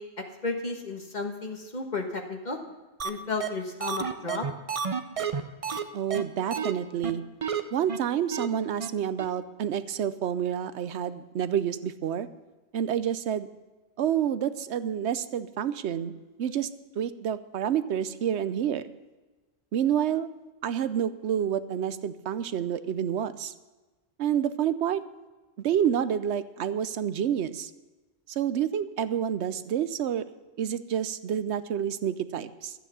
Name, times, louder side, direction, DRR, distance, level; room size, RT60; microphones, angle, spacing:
voice 1, 0.4-2.6 3.0-4.4, left 3 dB, 40° left, 3 dB, 1.6 m, -33 dB
sound 1, 3.0-3.1 3.4-3.5 3.8-5.8 6.1-6.2 6.5-6.7 7.0-7.1 7.4-7.6 7.9-8.0 8.3-8.5 8.8-8.9 9.2-9.3, right 6 dB, 35° right, 0.7 m, -30 dB
voice 2, 5.9-7.2 7.7-12.3 12.7-13.5 14.0-16.1 16.4-16.7 17.0-18.8 19.7-20.3 20.6-23.5 24.2-25.0 25.6-27.7 28.3-30.2 30.6-32.7, right 9 dB, 90° right, 13 dB, 1.0 m, -28 dB
12.5 x 9.2 x 6.9 m, 1.2 s
omnidirectional pair, 1.1 m